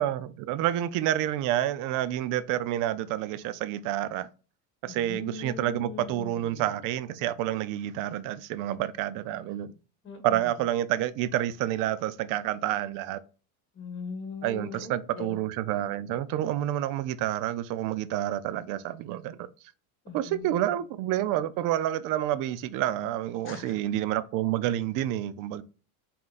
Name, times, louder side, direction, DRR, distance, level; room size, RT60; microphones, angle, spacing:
voice 1, 0.0-4.3 4.8-9.7 10.2-13.2 14.4-19.5 20.1-25.6, right 12 dB, 50° right, 0.4 m, -29 dB
voice 2, 4.9-6.6 10.0-10.2 13.8-15.3 20.0-20.7 23.4-23.6, left 4 dB, 30° left, 1.4 m, -40 dB
3.9 x 3.8 x 2.4 m
supercardioid pair, 115°, 43 cm